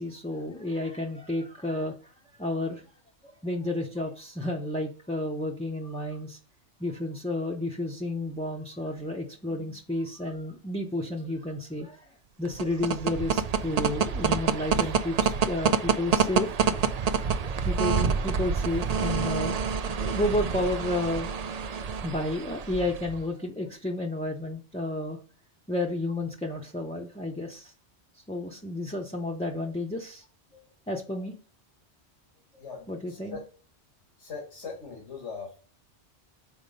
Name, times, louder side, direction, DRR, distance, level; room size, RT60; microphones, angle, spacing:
voice 1, 0.0-2.0 2.4-2.8 3.2-6.4 6.8-12.1 12.4-16.8 17.6-19.6 20.0-21.3 22.0-25.2 25.7-27.7 28.3-30.2 30.5-31.3 32.9-33.4, left 1 dB, 5° left, -1 dB, 0.6 m, -31 dB
sound 1, 12.4-23.2, right 6 dB, 55° right, 0.4 m, -27 dB
voice 2, 32.6-33.4 34.2-35.6, left 4 dB, 85° left, 0 dB, 2.2 m, -40 dB
5.9 x 4.3 x 5.3 m, 0.42 s
omnidirectional pair, 1.2 m